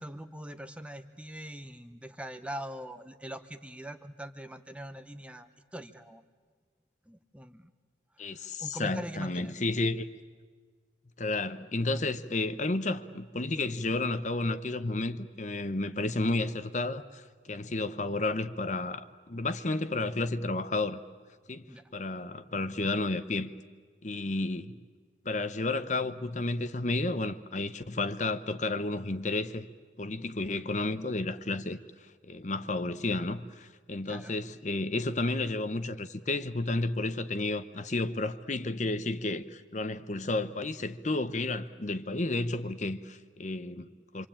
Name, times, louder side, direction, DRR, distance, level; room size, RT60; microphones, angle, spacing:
voice 1, 0.0-6.2 7.1-7.7 8.2-9.6 21.7-21.8 34.1-34.4, equal, 5° right, 0.9 m, -42 dB
voice 2, 8.2-10.0 11.2-21.0 21.5-21.7 21.9-23.5 24.0-24.7 25.2-29.7 30.0-31.8 32.2-44.3, left 2 dB, 40° left, 0.9 m, -32 dB
26.0 x 25.5 x 8.8 m
head